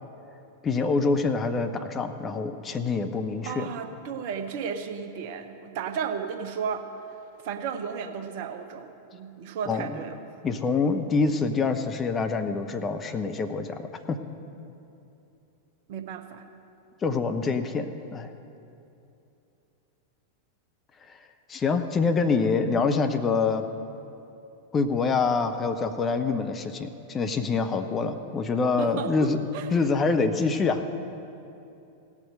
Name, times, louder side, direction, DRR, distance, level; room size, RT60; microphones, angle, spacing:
voice 1, 0.6-3.7 9.7-9.9 10.4-14.2 17.0-18.3 21.5-23.7 24.7-29.4 29.7-30.8, left 4 dB, 20° left, 7 dB, 0.6 m, -26 dB
voice 2, 3.4-6.9 7.4-10.3 15.9-16.4 28.8-29.7, right 6 dB, 50° right, 8 dB, 0.8 m, -34 dB
17.0 x 6.0 x 6.6 m, 2.8 s
figure-of-eight pair, 90°, 0 cm